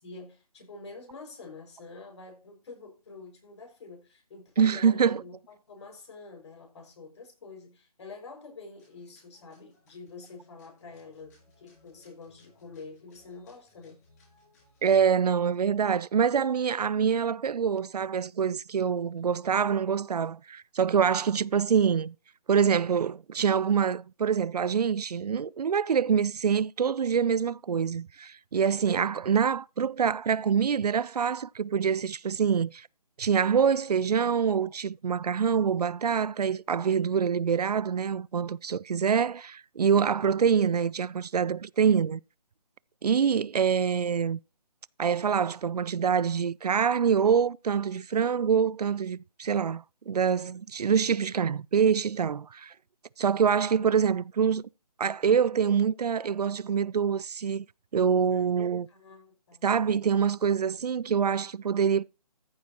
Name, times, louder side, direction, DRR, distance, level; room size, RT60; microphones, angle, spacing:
voice 1, 0.0-14.0 19.6-19.8 28.6-29.0 58.3-58.6 58.9-59.6, left 3 dB, 45° left, 5.2 m, -47 dB
voice 2, 4.6-5.2 14.8-22.1 22.5-32.9 33.2-42.2 43.0-44.4 45.0-52.7 53.2-54.6 55.0-57.6 57.9-58.9 59.6-62.0, right 7 dB, 75° right, 0.4 m, -25 dB
sound 1, 8.8-14.9, left 2 dB, 25° left, 5.5 m, -64 dB
14.0 x 7.1 x 2.8 m
figure-of-eight pair, 160°, 20 cm